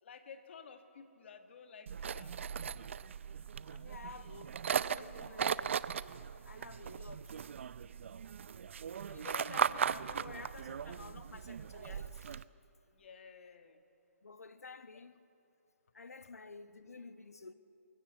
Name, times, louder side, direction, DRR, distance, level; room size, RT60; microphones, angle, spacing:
voice 1, 0.0-2.4 4.0-4.5 7.4-7.5 12.9-13.8 16.2-16.3, left 6 dB, 50° left, 1.7 m, -54 dB
sound 1, 1.9-12.4, right 7 dB, 55° right, 0.5 m, -38 dB
voice 2, 3.6-5.8 6.4-7.3 9.1-12.4 14.2-15.2 15.9-17.5, left 4 dB, 85° left, 1.1 m, -51 dB
24.0 x 14.5 x 8.0 m
hypercardioid pair, 150°, 8 cm